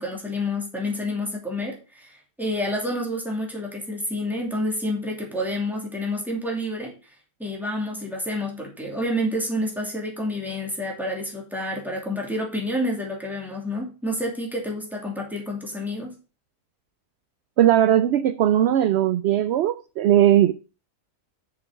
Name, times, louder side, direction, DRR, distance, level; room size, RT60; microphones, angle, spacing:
voice 1, 0.0-6.9 7.4-16.1, left 1 dB, ahead, 2.7 m, -29 dB
voice 2, 17.6-20.5, right 11 dB, 65° right, 0.6 m, -19 dB
6.8 x 5.9 x 5.6 m
omnidirectional pair, 1.5 m